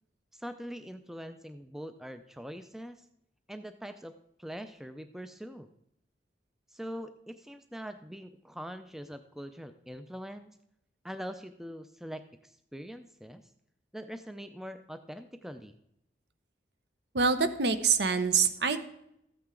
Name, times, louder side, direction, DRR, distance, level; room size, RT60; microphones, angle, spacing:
voice 1, 0.3-3.1 3.5-4.1 4.4-5.7 6.7-10.6 11.0-13.5 13.9-15.8, equal, ahead, 9 dB, 0.4 m, -43 dB
voice 2, 17.1-18.8, right 5 dB, 70° right, 10 dB, 0.8 m, -25 dB
13.5 x 8.7 x 3.7 m, 0.78 s
head